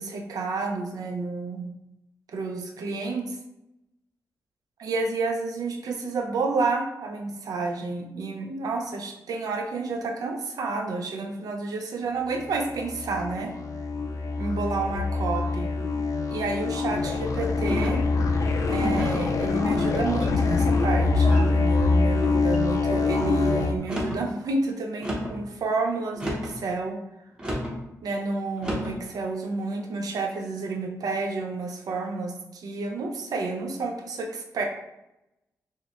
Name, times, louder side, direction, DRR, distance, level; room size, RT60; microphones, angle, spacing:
voice 1, 0.0-1.7 2.3-3.4 4.8-13.5 14.4-15.7 16.3-18.0 18.6-27.0 28.0-34.7, right 3 dB, 70° right, 2 dB, 0.6 m, -30 dB
sound 1, 12.3-23.7, left 3 dB, 55° left, 0.5 m, -24 dB
sound 2, 17.7-18.1 18.8-19.3 19.9-20.4 21.1-21.5 22.2-22.6 23.8-24.2 25.0-25.4 26.1-26.6 27.4-27.8 28.6-29.0, equal, 15° right, 0.8 m, -32 dB
6.5 x 2.2 x 2.9 m, 0.89 s
wide cardioid pair, 170°, 7 cm